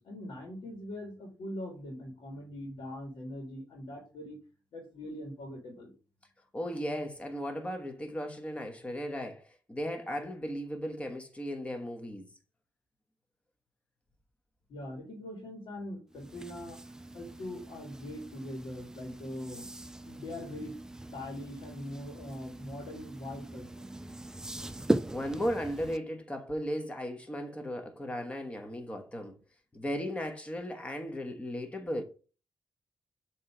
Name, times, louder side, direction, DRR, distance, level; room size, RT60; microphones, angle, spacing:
voice 1, 0.0-4.4 4.7-5.9 14.7-16.8 17.1-19.7 20.0-20.7 21.1-23.9, left 1 dB, 80° left, 1.7 m, -42 dB
voice 2, 6.5-12.3 25.1-29.4 29.7-32.0, equal, 15° left, 1.1 m, -36 dB
sound 1, 16.1-26.0, right 1 dB, 10° right, 0.3 m, -39 dB
7.2 x 3.0 x 4.6 m
cardioid pair, 105°, 8 cm